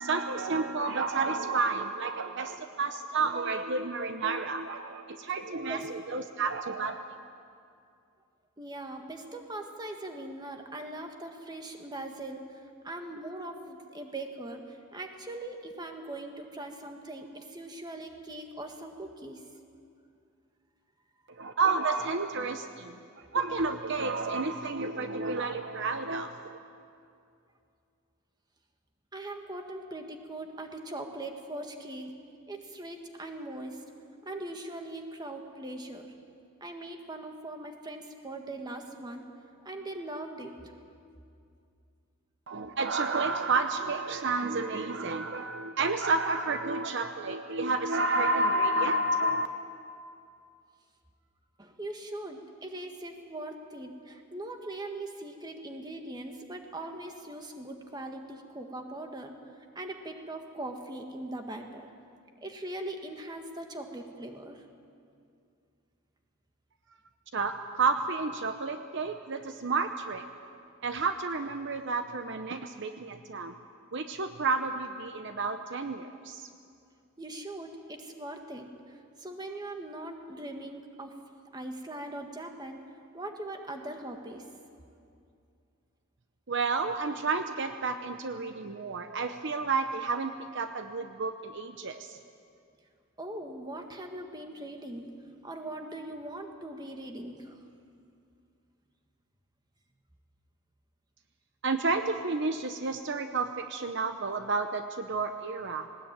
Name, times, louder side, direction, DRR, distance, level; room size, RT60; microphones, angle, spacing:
voice 1, 0.0-7.0 21.4-26.6 42.5-49.5 67.3-70.2 70.8-73.5 73.9-76.5 86.5-92.2 101.6-105.9, right 3 dB, 55° right, 8 dB, 0.8 m, -30 dB
voice 2, 8.6-19.4 29.1-32.1 32.5-33.8 34.2-36.1 36.6-39.3 39.6-40.7 51.6-59.3 59.7-61.9 62.4-64.6 77.2-81.1 81.5-82.8 83.1-84.5 93.2-95.1 95.4-97.6, right 1 dB, 20° right, 4 dB, 1.7 m, -41 dB
19.5 x 19.0 x 8.9 m, 2.4 s
head